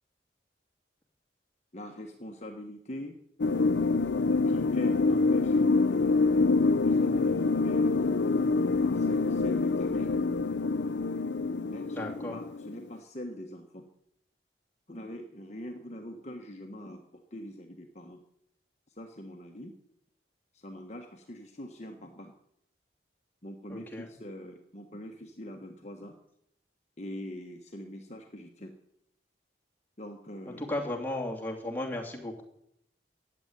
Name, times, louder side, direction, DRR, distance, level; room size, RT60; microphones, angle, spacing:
voice 1, 1.7-3.2 4.5-5.7 6.8-7.9 8.9-10.2 11.7-13.9 14.9-18.2 18.9-19.7 20.5-22.3 23.4-26.1 27.0-28.7 30.0-30.7, left 1 dB, 35° left, 3 dB, 1.3 m, -43 dB
sound 1, 3.4-12.8, left 3 dB, 75° left, 0.6 m, -26 dB
voice 2, 11.9-12.4 23.7-24.1 30.6-32.4, left 1 dB, 10° left, -1 dB, 2.7 m, -35 dB
15.0 x 8.8 x 9.6 m, 0.76 s
head